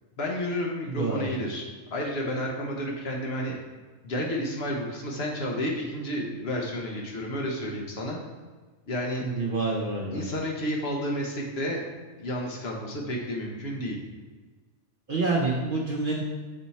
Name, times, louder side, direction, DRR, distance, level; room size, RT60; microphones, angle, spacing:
voice 1, 0.2-3.6 4.0-8.2 8.9-9.3 10.1-11.8 12.2-14.0, equal, 55° left, 0 dB, 1.0 m, -31 dB
voice 2, 0.9-1.3 9.2-10.3 15.1-16.2, right 3 dB, 50° right, -2 dB, 0.7 m, -27 dB
5.5 x 4.3 x 4.1 m, 1.4 s
omnidirectional pair, 1.4 m